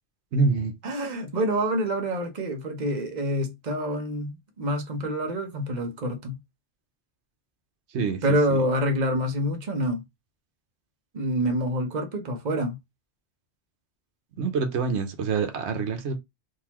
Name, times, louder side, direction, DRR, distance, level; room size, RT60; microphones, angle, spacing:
voice 1, 0.3-0.7 7.9-8.2 8.5-8.6 14.4-16.2, right 4 dB, 85° right, 1.0 m, -26 dB
voice 2, 0.8-6.4 8.2-10.0 11.1-12.8, equal, 45° right, 1.0 m, -27 dB
3.8 x 2.7 x 2.9 m
omnidirectional pair, 1.1 m